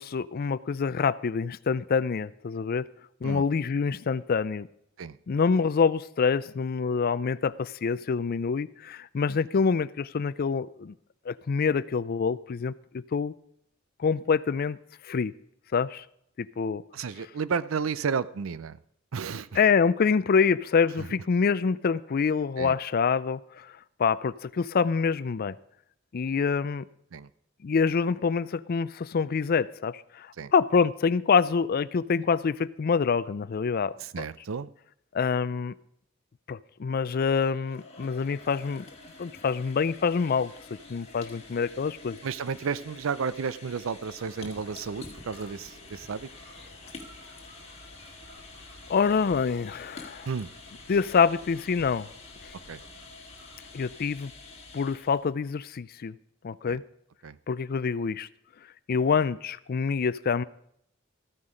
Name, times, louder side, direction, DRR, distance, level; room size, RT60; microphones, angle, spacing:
voice 1, 0.0-2.9 3.2-4.7 5.3-10.9 11.3-13.3 14.0-14.8 15.0-15.3 15.7-16.0 16.4-16.8 19.5-23.7 24.0-25.6 26.1-26.9 27.6-34.2 35.1-35.7 36.5-38.9 39.2-40.5 40.9-42.2 48.9-50.3 50.9-52.1 52.4-52.5 53.7-54.3 54.7-56.1 56.4-56.8 57.5-58.3 58.9-60.4, left 5 dB, 50° left, 0.4 m, -26 dB
voice 2, 16.9-18.8 19.1-19.5 21.0-21.1 22.6-22.8 27.1-27.3 30.4-30.5 34.0-34.7 42.2-46.3 50.3-50.5 52.7-52.8 56.7-56.8 57.2-57.4, right 6 dB, 85° right, 0.5 m, -32 dB
sound 1, 37.1-55.3, left 3 dB, 35° left, 2.0 m, -48 dB
sound 2, 44.2-54.0, right 1 dB, 65° right, 4.9 m, -55 dB
14.0 x 9.6 x 5.0 m
head